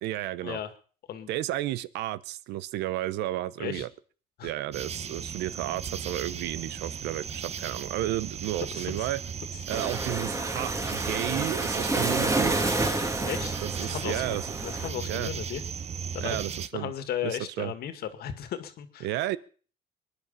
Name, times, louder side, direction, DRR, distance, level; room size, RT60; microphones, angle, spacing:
voice 1, 0.0-0.6 1.3-3.9 4.4-9.2 9.7-12.5 13.6-14.5 15.1-15.3 16.2-16.9 17.2-17.7 19.0-19.4, right 14 dB, 85° right, 18 dB, 0.8 m, -32 dB
sound 1, 4.7-16.7, right 7 dB, 40° right, 1.0 m, -37 dB
voice 2, 8.7-9.1 13.3-13.6 13.9-15.6 16.1-16.5 16.7-19.1, left 10 dB, 65° left, 10 dB, 2.1 m, -35 dB
Waves surf, 9.7-14.9, right 2 dB, 20° right, 2.1 m, -29 dB
23.0 x 10.5 x 5.6 m, 0.42 s
cardioid pair, 110°, 17 cm